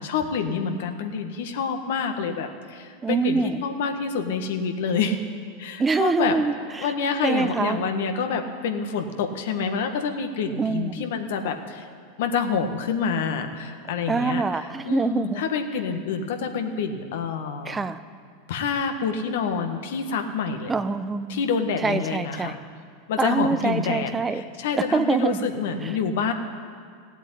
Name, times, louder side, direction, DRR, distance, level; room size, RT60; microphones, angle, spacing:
voice 1, 0.0-5.2 5.6-6.3 6.8-11.9 12.2-17.8 18.5-20.7 21.3-22.6 23.1-26.3, left 5 dB, 70° left, 6 dB, 1.6 m, -27 dB
voice 2, 3.0-3.6 5.8-6.9 7.2-7.8 10.6-10.9 14.1-15.4 17.6-18.0 20.7-21.4 21.8-22.5 23.2-24.4 24.9-25.5 25.8-25.9, right 4 dB, 15° right, 12 dB, 0.6 m, -25 dB
16.0 x 8.0 x 9.9 m, 2.1 s
hypercardioid pair, 100°, 0 cm